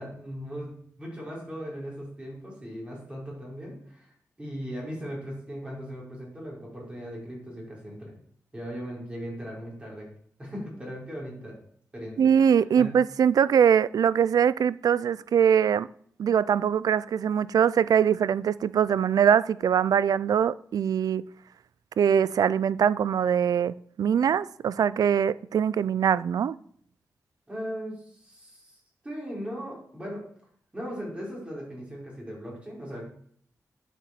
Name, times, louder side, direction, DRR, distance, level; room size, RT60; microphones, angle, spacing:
voice 1, 0.0-4.1 4.4-8.1 8.5-10.1 10.4-11.6 11.9-12.9 27.5-30.2 30.7-33.1, equal, 15° right, 5.1 m, -38 dB
voice 2, 12.2-15.9 16.2-21.2 22.0-26.5, right 8 dB, 85° right, 0.4 m, -22 dB
9.2 x 8.2 x 7.6 m
wide cardioid pair, 170°, 6 cm